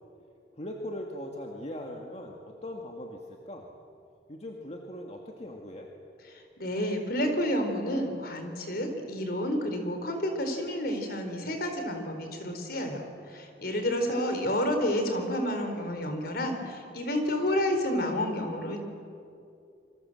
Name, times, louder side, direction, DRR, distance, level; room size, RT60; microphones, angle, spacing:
voice 1, 0.6-3.7 4.3-5.9, left 1 dB, 35° left, 1 dB, 2.0 m, -40 dB
voice 2, 6.3-18.8, equal, 55° left, 5 dB, 3.9 m, -30 dB
27.0 x 25.0 x 7.8 m, 2.5 s
head